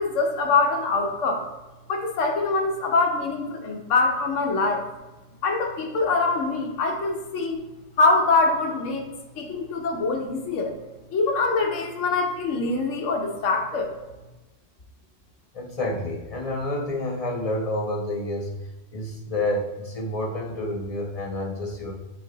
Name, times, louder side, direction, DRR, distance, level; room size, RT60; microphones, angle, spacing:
voice 1, 0.0-1.4 1.9-4.8 5.4-7.6 8.0-9.0 9.4-10.7 11.1-13.9, left 3 dB, 85° left, 2 dB, 1.2 m, -24 dB
voice 2, 15.5-21.9, left 1 dB, 30° left, -1 dB, 1.0 m, -29 dB
8.1 x 3.1 x 3.9 m, 1.1 s
omnidirectional pair, 1.3 m